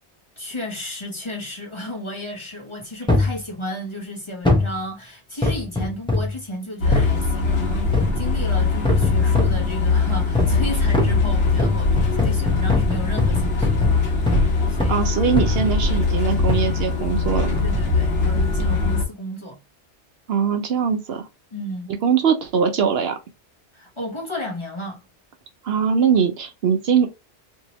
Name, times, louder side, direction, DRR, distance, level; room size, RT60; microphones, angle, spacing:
voice 1, 0.4-14.4 14.7-15.0 17.6-19.6 21.5-21.9 23.7-25.0, left 1 dB, 30° left, 0.8 m, -33 dB
sound 1, 3.1-3.4 4.4-4.8 5.4-6.4 6.9-7.1 7.9-8.3 8.8-9.6 10.3-10.6 10.9-14.5 14.8-15.0 15.4-15.8 16.5-16.7 17.6-17.9 18.5-18.6, left 2 dB, 10° left, 0.3 m, -22 dB
sound 2, 6.8-19.1, left 4 dB, 60° left, 1.2 m, -21 dB
voice 2, 14.9-17.7 20.3-21.3 22.0-23.2 25.6-27.1, right 7 dB, 65° right, 0.8 m, -21 dB
2.7 x 2.7 x 2.9 m
omnidirectional pair, 1.2 m